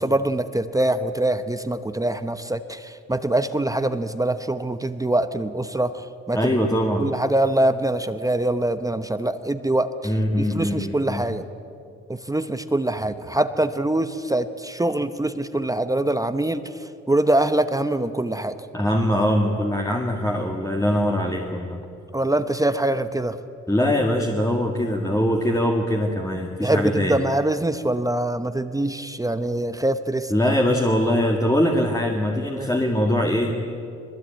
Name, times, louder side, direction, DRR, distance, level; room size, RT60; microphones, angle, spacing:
voice 1, 0.0-5.9 6.3-6.4 7.0-10.1 10.4-11.4 12.3-16.6 17.1-18.5 22.1-23.4 26.6-30.3 32.5-32.7, right 1 dB, 10° right, 10 dB, 0.9 m, -23 dB
voice 2, 6.3-7.1 10.0-11.3 18.7-21.8 23.7-27.2 30.3-33.5, left 1 dB, 10° left, 1 dB, 2.1 m, -22 dB
21.5 x 21.0 x 9.1 m, 2.5 s
cardioid pair, 90°, 30 cm